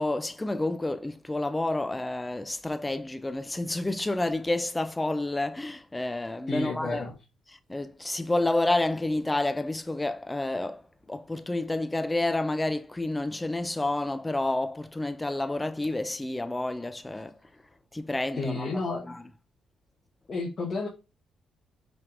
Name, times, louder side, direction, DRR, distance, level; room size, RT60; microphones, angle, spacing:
voice 1, 0.0-7.0 7.7-10.8 11.1-17.3 17.9-19.2, left 2 dB, 15° left, 0.4 m, -29 dB
voice 2, 6.5-7.2 18.3-19.1 20.3-20.9, left 3 dB, 45° left, 1.0 m, -31 dB
5.6 x 3.4 x 2.5 m
cardioid pair, 90°, 0 cm